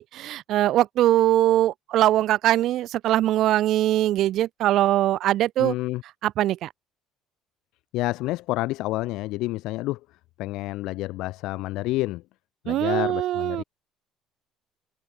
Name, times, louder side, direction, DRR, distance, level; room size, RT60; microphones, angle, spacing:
voice 1, 0.0-5.7 6.2-6.7 12.7-13.6, right 13 dB, 65° right, 0.9 m, -22 dB
voice 2, 5.6-6.0 7.9-10.0 10.4-12.2 12.6-13.6, left 18 dB, 75° left, 2.1 m, -29 dB
cardioid pair, 100°, 0 cm